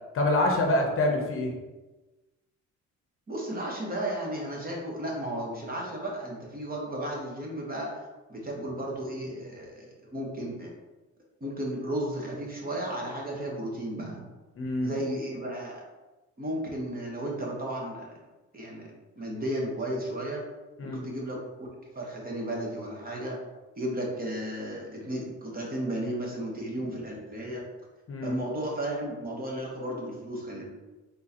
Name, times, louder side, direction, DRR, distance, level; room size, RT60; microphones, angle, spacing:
voice 1, 0.1-1.5 14.6-14.9 20.8-21.0 28.1-28.4, left 1 dB, 45° left, 2 dB, 0.8 m, -26 dB
voice 2, 3.3-8.0 8.3-10.7 11.4-14.2 14.8-15.8 16.4-18.1 18.5-20.4 20.8-21.7 21.9-23.4 23.8-27.6 28.2-30.7, right 1 dB, 30° right, -2 dB, 1.2 m, -34 dB
3.9 x 3.7 x 2.8 m, 1.1 s
cardioid pair, 90°, 30 cm